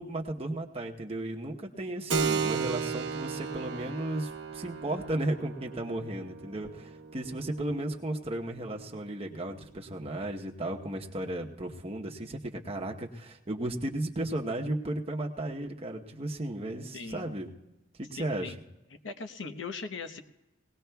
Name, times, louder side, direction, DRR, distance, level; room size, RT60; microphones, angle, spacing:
voice 1, 0.0-17.5 18.0-18.5, right 1 dB, 30° right, 1 dB, 0.9 m, -35 dB
Keyboard (musical), 2.1-10.3, right 5 dB, 70° right, 1.0 m, -36 dB
voice 2, 16.9-17.3 18.1-18.6 19.0-20.2, left 4 dB, 80° left, 8 dB, 0.9 m, -39 dB
21.5 x 18.0 x 2.3 m, 1.0 s
head